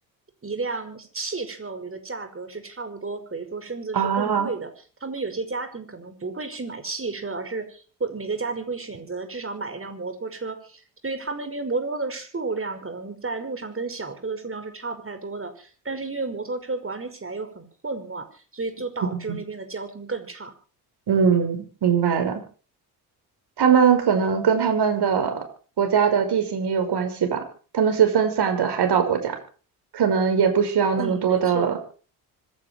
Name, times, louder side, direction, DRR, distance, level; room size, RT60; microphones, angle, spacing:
voice 1, 0.4-4.7 5.0-20.5 31.0-31.7, right 3 dB, 30° right, 7 dB, 5.6 m, -32 dB
voice 2, 3.9-4.5 19.3-19.4 21.1-22.4 23.6-25.4 25.8-27.4 27.7-29.4 29.9-31.8, right 7 dB, 55° right, 6 dB, 5.7 m, -21 dB
25.5 x 11.0 x 4.6 m, 0.40 s
hypercardioid pair, 50°, 46 cm